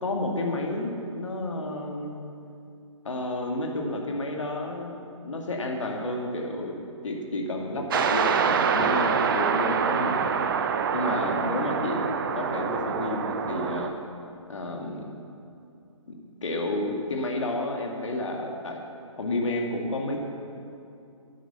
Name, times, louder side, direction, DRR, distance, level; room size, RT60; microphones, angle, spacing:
voice 1, 0.0-2.2 3.0-5.0 5.2-6.8 7.0-10.5 10.9-13.9 14.5-15.0 16.1-16.2 16.4-18.8 19.2-20.2, left 1 dB, 65° left, 2 dB, 2.1 m, -30 dB
sound 1, 7.9-13.9, right 6 dB, 40° right, 0.7 m, -26 dB
10.5 x 10.0 x 6.8 m, 2.6 s
figure-of-eight pair, 140°, 17 cm